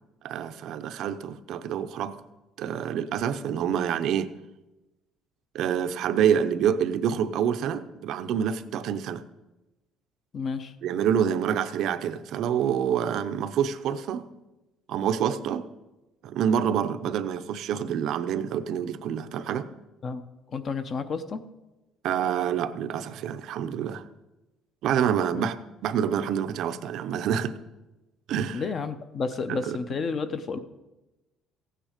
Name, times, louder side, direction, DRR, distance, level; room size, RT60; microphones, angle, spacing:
voice 1, 0.2-2.2 2.6-4.3 5.5-9.2 10.8-14.2 14.9-15.7 16.2-19.7 22.0-24.1 24.8-25.6 25.8-27.6 28.3-28.6 29.5-29.8, right 8 dB, 55° right, 11 dB, 0.6 m, -27 dB
voice 2, 10.3-10.7 20.0-20.2 20.5-21.4 25.3-25.5 28.5-30.6, left 5 dB, 30° left, 12 dB, 0.6 m, -31 dB
15.5 x 9.0 x 5.0 m, 1.0 s
cardioid pair, 175°, 0 cm